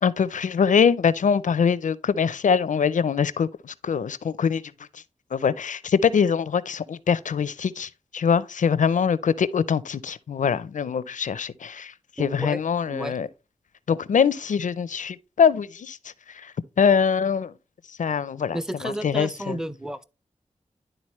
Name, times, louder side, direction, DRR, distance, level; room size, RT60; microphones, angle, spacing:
voice 1, 0.0-4.6 4.9-5.0 5.3-13.3 13.9-17.5 18.0-19.6, left 6 dB, 80° left, 0.5 m, -23 dB
voice 2, 12.2-12.6 12.9-13.2 18.5-20.0, right 1 dB, 5° right, 0.6 m, -31 dB
11.0 x 3.9 x 3.1 m
cardioid pair, 60°, 13 cm